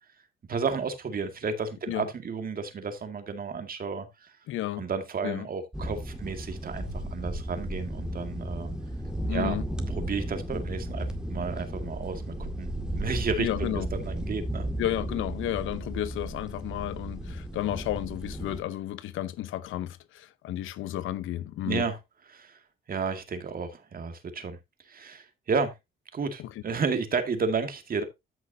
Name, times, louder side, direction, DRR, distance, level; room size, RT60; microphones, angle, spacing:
voice 1, 0.5-4.4 4.8-8.7 9.3-9.6 9.9-14.7 21.6-22.0 22.3-22.6 22.9-24.6 24.9-25.7 26.1-28.0, right 5 dB, 45° right, 2.2 m, -32 dB
voice 2, 4.5-4.8 5.2-5.5 9.3-9.6 13.4-13.9 14.8-21.8 26.4-26.5, left 13 dB, 85° left, 0.8 m, -32 dB
sound 1, 5.7-18.6, right 1 dB, 5° right, 2.1 m, -34 dB
14.0 x 6.1 x 2.7 m
cardioid pair, 90°, 20 cm